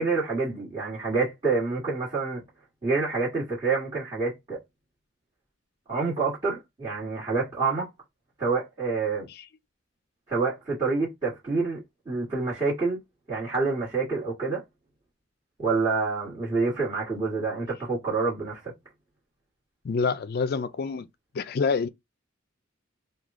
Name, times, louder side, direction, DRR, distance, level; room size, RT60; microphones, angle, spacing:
voice 1, 0.0-2.4 2.8-4.6 5.9-7.9 8.4-9.3 10.3-11.8 12.0-13.0 13.3-14.6 15.6-18.7, right 4 dB, 25° right, 1.6 m, -27 dB
voice 2, 19.8-21.1 21.3-21.9, left 5 dB, 50° left, 0.4 m, -27 dB
3.3 x 2.3 x 3.6 m
head